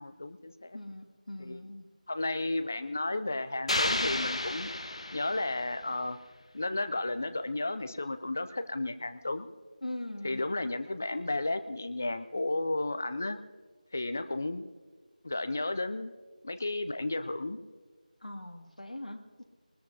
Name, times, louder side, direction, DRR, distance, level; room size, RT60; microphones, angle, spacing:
voice 1, 0.0-0.8 1.4-1.6 2.1-4.7 5.1-6.2 6.5-9.5 10.2-13.4 13.9-14.7 15.2-16.1 16.4-17.6, left 2 dB, 20° left, 11 dB, 0.3 m, -33 dB
voice 2, 0.7-1.8 9.8-10.4 18.2-19.4, left 1 dB, 65° left, 3 dB, 2.1 m, -41 dB
sound 1, 3.7-5.8, left 1 dB, 45° left, 1.1 m, -32 dB
23.0 x 20.0 x 2.7 m, 1.4 s
figure-of-eight pair, 170°, 4 cm